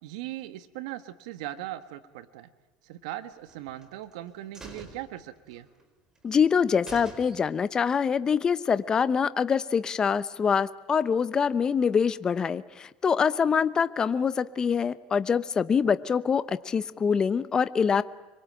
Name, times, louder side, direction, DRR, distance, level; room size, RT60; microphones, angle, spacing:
voice 1, 0.0-2.5 2.8-5.7, right 14 dB, 80° right, 10 dB, 1.5 m, -39 dB
sound 1, 3.5-4.2 4.5-5.8 6.2-6.3 6.6-6.7 6.9-7.8 8.1-8.2, right 2 dB, 15° right, 4.3 m, -46 dB
voice 2, 6.2-18.0, left 6 dB, 20° left, 14 dB, 0.9 m, -25 dB
26.0 x 23.0 x 8.8 m, 1.2 s
supercardioid pair, 145°, 3 cm